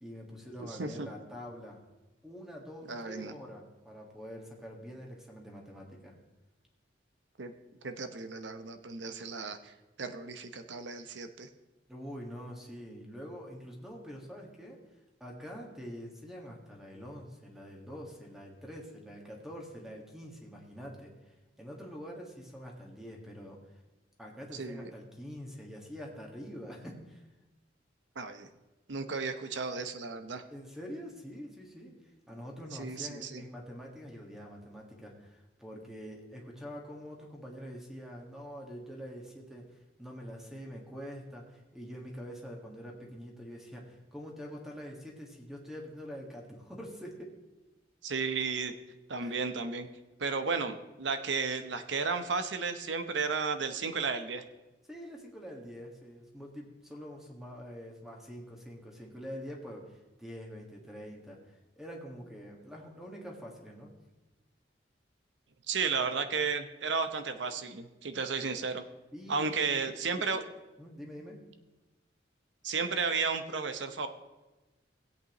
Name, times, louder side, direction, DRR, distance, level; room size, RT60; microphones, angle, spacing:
voice 1, 0.0-1.8 2.2-6.1 11.9-14.8 15.2-23.6 24.2-27.2 30.5-32.0 32.3-47.3 49.2-49.4 54.9-61.4 61.8-63.9 69.1-70.4 70.8-71.4, equal, 5° right, -1 dB, 1.7 m, -45 dB
voice 2, 0.6-1.1 2.9-3.4 7.4-7.5 7.8-11.5 24.5-24.9 28.2-28.5 28.9-30.4 32.8-33.4 48.0-48.7 49.1-49.9 50.2-54.4 65.7-68.8 69.3-70.4 72.6-74.1, right 4 dB, 75° right, 8 dB, 0.8 m, -33 dB
16.5 x 8.4 x 3.0 m, 1.1 s
head